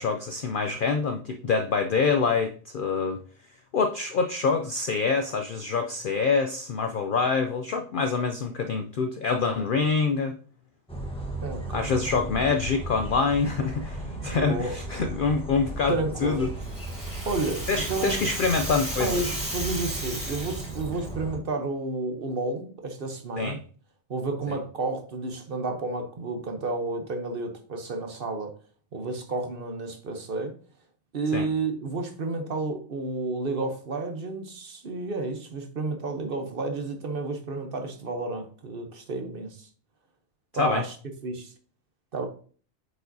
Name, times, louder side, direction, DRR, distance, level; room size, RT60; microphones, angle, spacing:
voice 1, 0.0-3.2 3.7-10.4 11.7-16.5 17.7-19.4 23.4-23.6 24.5-24.6 31.3-31.5 40.5-40.8, left 4 dB, 65° left, 6 dB, 0.5 m, -26 dB
sound 1, 10.9-21.4, right 2 dB, 5° left, 0.9 m, -36 dB
voice 2, 11.4-11.9 14.2-14.8 15.9-16.5 17.3-18.2 19.0-23.6 24.1-28.5 28.9-30.5 31.1-39.7 40.5-41.0 41.2-41.5 42.1-42.3, right 3 dB, 50° right, 5 dB, 0.9 m, -31 dB
Rattle (instrument), 16.3-21.1, equal, 25° right, 3.3 m, -35 dB
7.8 x 4.9 x 2.7 m, 0.43 s
omnidirectional pair, 1.3 m